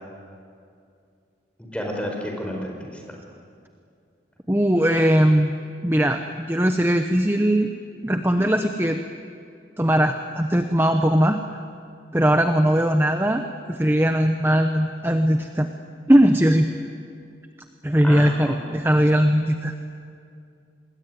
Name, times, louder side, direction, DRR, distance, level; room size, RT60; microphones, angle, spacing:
voice 1, 1.6-3.2 18.0-18.6, equal, 5° left, 1 dB, 4.9 m, -31 dB
voice 2, 4.5-5.5 5.8-7.7 8.0-9.0 9.8-11.4 12.1-13.4 13.7-15.7 16.1-16.7 17.8-19.7, equal, 10° right, 6 dB, 0.9 m, -19 dB
27.0 x 21.0 x 9.4 m, 2.4 s
head